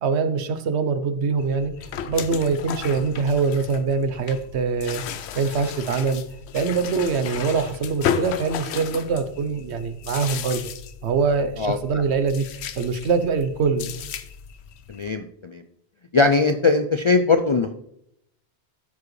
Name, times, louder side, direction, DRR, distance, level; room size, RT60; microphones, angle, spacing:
voice 1, 0.0-1.7 2.1-5.0 5.3-6.2 6.5-10.7 11.0-12.5 12.8-13.9, right 5 dB, 85° right, 10 dB, 1.0 m, -23 dB
sound 1, 1.4-15.1, left 8 dB, 85° left, 0.9 m, -34 dB
voice 2, 11.6-12.0 14.9-15.6 16.1-17.7, left 4 dB, 55° left, 7 dB, 0.3 m, -20 dB
13.0 x 4.9 x 3.2 m, 0.74 s
omnidirectional pair, 1.1 m